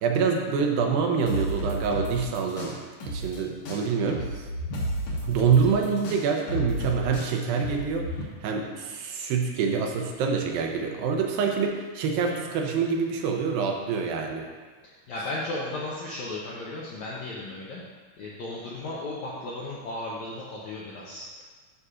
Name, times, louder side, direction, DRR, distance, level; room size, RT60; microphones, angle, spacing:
voice 1, 0.0-2.8 3.1-4.5 5.2-8.1 8.4-14.5, right 5 dB, 80° right, 2 dB, 2.3 m, -26 dB
sound 1, 1.3-3.4 3.6-8.2, right 1 dB, 60° left, 2.0 m, -32 dB
voice 2, 14.8-17.8 18.2-21.4, left 2 dB, 80° left, -5 dB, 1.7 m, -35 dB
9.5 x 6.6 x 2.4 m, 1.4 s
omnidirectional pair, 4.3 m